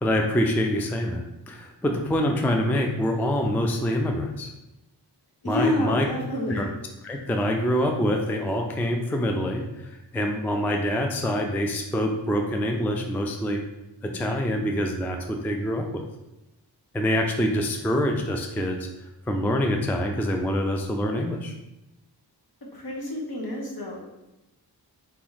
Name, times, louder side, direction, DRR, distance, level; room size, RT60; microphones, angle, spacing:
voice 1, 0.0-4.5 5.4-6.1 6.5-6.7 7.0-13.6 14.0-16.0 16.9-18.9 19.3-21.5, equal, 5° left, 2 dB, 0.3 m, -25 dB
voice 2, 5.4-6.7 22.7-24.0, left 1 dB, 55° left, -2 dB, 1.2 m, -28 dB
4.1 x 2.9 x 3.9 m, 0.94 s
wide cardioid pair, 85°, 43 cm